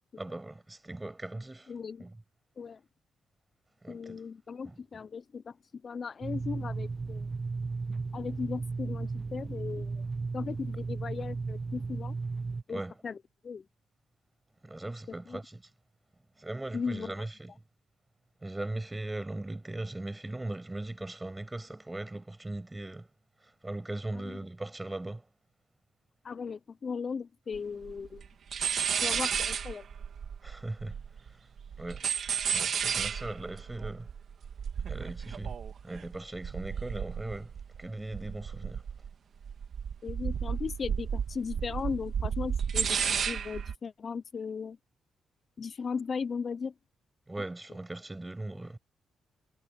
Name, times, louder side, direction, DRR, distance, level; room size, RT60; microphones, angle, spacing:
voice 1, 0.2-1.7 2.0-2.2 3.8-4.2 4.7-4.8 12.7-13.0 14.6-15.6 16.4-17.5 18.4-23.1 23.4-25.2 30.4-31.4 31.8-32.1 32.5-34.1 34.9-35.6 35.8-37.5 37.8-38.8 47.3-48.8, right 2 dB, 15° right, 6.9 m, -39 dB
voice 2, 1.7-2.0 2.6-2.8 3.9-5.6 5.8-7.3 8.1-10.0 10.3-12.1 12.7-13.2 13.4-13.6 15.3-15.4 16.7-17.1 24.2-24.4 26.2-28.3 29.0-29.9 40.0-44.8 45.6-46.7, left 5 dB, 50° left, 0.7 m, -37 dB
sound 1, 6.2-12.6, right 4 dB, 35° right, 0.6 m, -35 dB
sound 2, 27.5-27.6 27.8-28.3 28.5-31.3 31.6-37.9 38.1-39.1 39.4-43.7, right 7 dB, 60° right, 2.3 m, -33 dB
cardioid pair, 75°, 0 cm